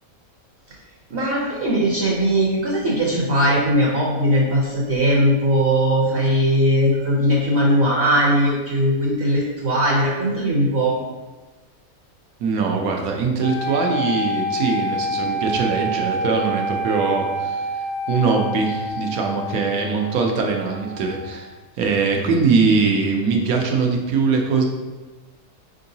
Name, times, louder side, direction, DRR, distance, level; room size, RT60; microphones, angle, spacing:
voice 1, 1.1-10.9, equal, 50° right, -4 dB, 0.8 m, -19 dB
voice 2, 12.4-24.6, right 4 dB, 75° right, 1 dB, 1.1 m, -22 dB
sound 1, 13.4-21.5, equal, 30° left, 0.6 m, -27 dB
4.5 x 3.7 x 2.7 m, 1.2 s
omnidirectional pair, 1.6 m